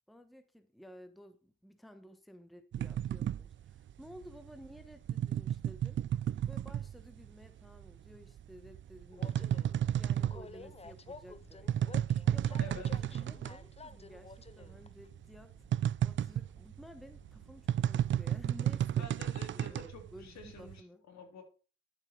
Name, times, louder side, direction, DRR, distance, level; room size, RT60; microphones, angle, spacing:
voice 1, 0.1-6.0 6.5-9.7 10.0-11.7 12.3-21.0, equal, ahead, 9 dB, 1.2 m, -54 dB
sound 1, 2.7-7.5 7.8-13.7 13.9-14.0 14.3-20.8, right 10 dB, 40° right, 0.4 m, -33 dB
Train, 9.1-17.7, left 4 dB, 20° left, 0.7 m, -53 dB
voice 2, 12.6-12.9 19.0-21.4, left 2 dB, 65° left, 3 dB, 3.8 m, -49 dB
12.0 x 7.7 x 4.7 m, 0.36 s
cardioid pair, 90°, 30 cm